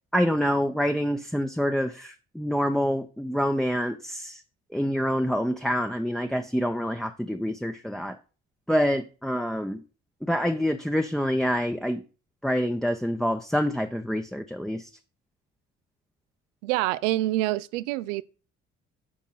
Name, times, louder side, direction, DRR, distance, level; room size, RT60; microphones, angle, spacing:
voice 1, 0.1-4.4 4.7-8.2 8.7-9.8 10.2-12.0 12.4-14.9, equal, ahead, 0.9 m, -26 dB
voice 2, 16.6-18.2, right 16 dB, 75° right, 0.6 m, -26 dB
10.0 x 6.0 x 4.0 m
figure-of-eight pair, 45°, 37 cm